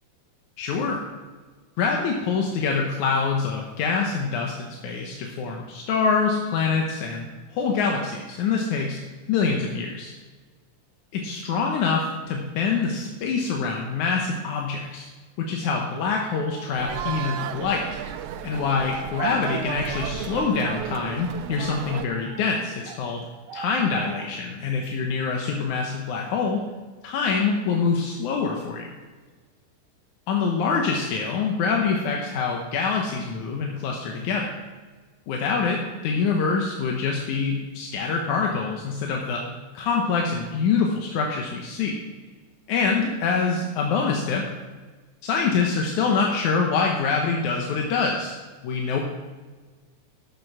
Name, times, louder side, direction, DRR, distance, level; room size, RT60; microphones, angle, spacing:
voice 1, 0.6-1.0 1.8-7.3 7.5-9.0 9.3-10.1 11.1-15.1 15.4-17.9 18.4-23.2 23.5-26.6 27.0-29.0 30.3-34.5 35.3-39.4 39.7-42.0 42.7-44.4 45.2-48.4 48.6-49.0, left 5 dB, 85° left, 0 dB, 2.4 m, -25 dB
sound 1, 16.2-17.0 18.5-19.2 21.0-21.1 21.6-23.0 23.5-24.3, right 3 dB, 65° right, 1.1 m, -41 dB
sound 2, 16.8-22.1, right 10 dB, 80° right, 1.4 m, -33 dB
11.0 x 7.5 x 6.0 m, 1.4 s
omnidirectional pair, 3.4 m